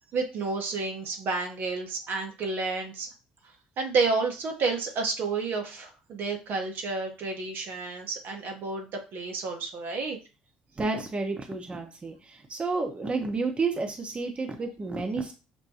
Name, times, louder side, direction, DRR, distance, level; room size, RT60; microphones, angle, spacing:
voice 1, 0.1-3.1 3.8-10.2, right 4 dB, 60° right, 3 dB, 0.9 m, -30 dB
voice 2, 10.8-15.3, right 3 dB, 25° right, 3 dB, 0.8 m, -31 dB
6.1 x 2.2 x 2.8 m, 0.32 s
hypercardioid pair, 60°, 4 cm